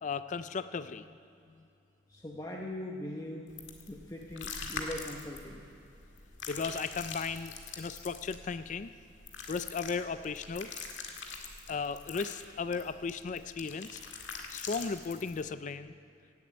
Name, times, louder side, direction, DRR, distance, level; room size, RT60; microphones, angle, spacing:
voice 1, 0.0-1.1 6.5-8.9 9.5-10.7 11.7-14.0 14.5-15.9, left 5 dB, 40° left, 12 dB, 0.4 m, -36 dB
voice 2, 2.1-3.5 3.9-5.7, left 1 dB, 20° left, -1 dB, 0.9 m, -41 dB
sound 1, 3.5-15.4, left 5 dB, 80° left, 1.8 m, -44 dB
17.0 x 8.4 x 8.7 m, 2.5 s
head